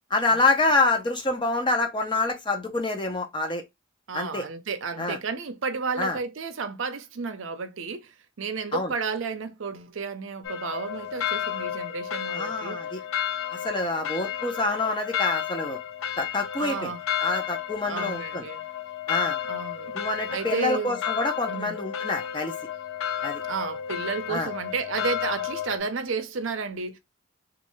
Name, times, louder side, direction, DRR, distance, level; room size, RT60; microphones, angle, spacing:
voice 1, 0.1-3.6 4.1-4.5 5.0-5.2 6.0-6.2 8.7-8.9 12.3-13.0 13.5-15.8 16.2-16.9 17.2-18.4 19.1-19.4 19.9-22.5 23.2-23.4 24.3-24.5, left 2 dB, 25° left, 0.7 m, -26 dB
voice 2, 4.1-12.8 16.6-17.0 17.9-18.6 19.5-20.0 20.3-21.0 21.5-21.8 23.5-27.0, right 4 dB, 70° right, 0.6 m, -32 dB
sound 1, 10.4-25.8, left 9 dB, 85° left, 0.6 m, -32 dB
3.2 x 2.4 x 3.0 m
head